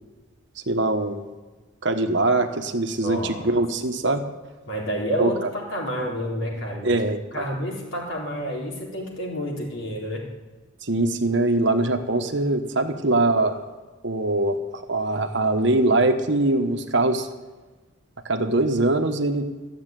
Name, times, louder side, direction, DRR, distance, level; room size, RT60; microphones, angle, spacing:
voice 1, 0.7-1.3 1.8-4.2 5.2-5.5 6.8-7.5 10.8-13.6 14.0-17.3 18.2-19.5, right 2 dB, 60° right, 6 dB, 1.3 m, -22 dB
voice 2, 3.0-3.6 4.7-5.4 5.7-7.0 7.3-10.3, equal, 65° left, -3 dB, 4.3 m, -29 dB
14.5 x 7.6 x 9.2 m, 1.3 s
head